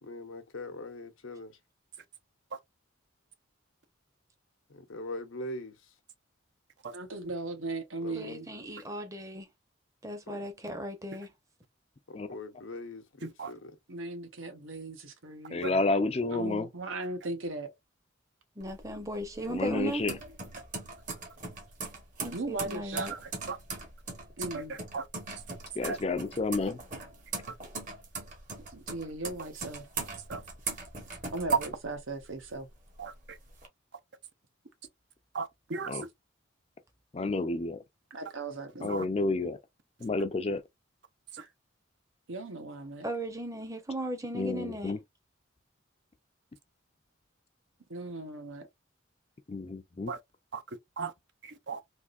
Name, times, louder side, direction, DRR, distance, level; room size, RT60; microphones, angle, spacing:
voice 1, 0.0-1.5 4.7-5.7 8.0-8.3 10.3-10.4 12.1-13.0 13.5-13.6, left 2 dB, 90° left, 0.8 m, -41 dB
voice 2, 6.9-8.5 13.9-15.8 16.3-17.8 22.3-23.1 24.4-24.7 28.7-29.9 31.3-32.7 38.1-38.9 41.4-41.5 42.3-43.1 47.9-48.7, right 2 dB, 85° right, 1.0 m, -38 dB
voice 3, 8.1-9.5 10.0-11.3 18.6-20.1 22.2-23.1 43.0-44.9, right 1 dB, 15° right, 0.7 m, -37 dB
voice 4, 13.2-13.5 15.6-15.7 22.9-23.6 24.5-25.0 25.8-26.0 27.5-27.6 30.3-30.4 33.0-33.4 35.3-36.0 38.9-39.0 41.3-41.4 50.1-50.2 50.5-51.1 51.4-51.8, right 4 dB, 60° right, 0.6 m, -37 dB
voice 5, 15.5-16.7 19.5-20.1 25.8-26.8 35.9-36.0 37.1-37.8 38.8-39.6 40.0-40.6 44.3-45.0 49.5-50.1, left 3 dB, 30° left, 0.4 m, -30 dB
sound 1, 18.6-32.4 32.8-33.7, right 3 dB, 40° right, 1.0 m, -40 dB
3.5 x 2.5 x 2.4 m
head